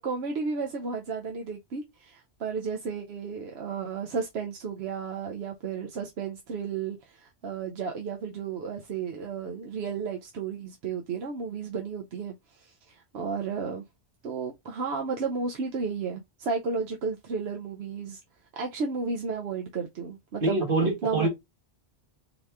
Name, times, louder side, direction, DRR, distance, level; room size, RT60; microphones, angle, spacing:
voice 1, 0.0-13.8 14.2-18.2 18.6-21.3, right 5 dB, 70° right, 1.0 m, -33 dB
voice 2, 20.4-21.3, right 2 dB, 50° right, 1.6 m, -25 dB
4.0 x 3.0 x 3.2 m
omnidirectional pair, 1.1 m